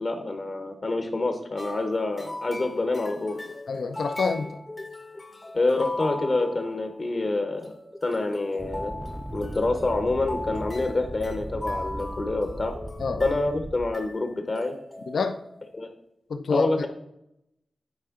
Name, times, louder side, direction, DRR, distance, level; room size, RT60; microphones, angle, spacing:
voice 1, 0.0-3.6 5.5-7.7 8.0-8.9 9.3-12.7 13.2-14.7 15.7-15.9 16.5-16.9, left 2 dB, 50° left, 5 dB, 0.9 m, -27 dB
sound 1, 1.6-7.2 7.5-13.5 13.9-14.3 14.5-15.8, left 1 dB, 20° left, 0.7 m, -39 dB
voice 2, 3.7-4.6 13.0-13.2 15.1-15.4 16.3-16.9, left 4 dB, 80° left, 7 dB, 0.6 m, -27 dB
sound 2, 8.6-13.9, right 1 dB, 15° right, 0.4 m, -37 dB
9.7 x 4.5 x 3.7 m, 0.80 s
wide cardioid pair, 90°, 0 cm